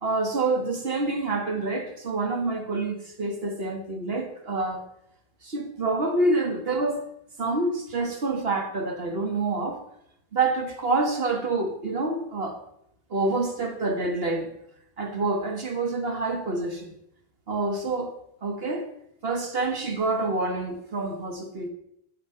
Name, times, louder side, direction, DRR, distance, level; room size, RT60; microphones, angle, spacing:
voice 1, 0.0-4.9 5.4-7.0 7.4-9.8 10.3-12.6 13.1-14.5 15.0-16.9 17.5-18.9 19.2-21.7, right 3 dB, 65° right, 4 dB, 1.7 m, -27 dB
14.0 x 7.7 x 5.6 m, 0.75 s
omnidirectional pair, 1.1 m